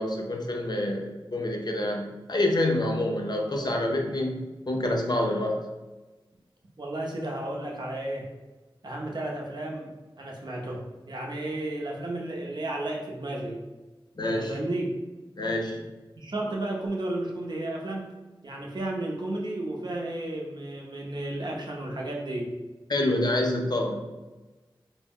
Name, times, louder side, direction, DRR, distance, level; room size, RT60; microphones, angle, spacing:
voice 1, 0.0-5.6 14.2-14.5 15.4-15.9 22.9-24.0, left 1 dB, 50° left, 1 dB, 0.5 m, -27 dB
voice 2, 6.8-8.3 8.8-13.6 14.2-14.9 16.2-18.1 18.4-22.5, right 1 dB, 55° right, -1 dB, 0.6 m, -33 dB
2.2 x 2.0 x 3.5 m, 1.2 s
cardioid pair, 45°, 9 cm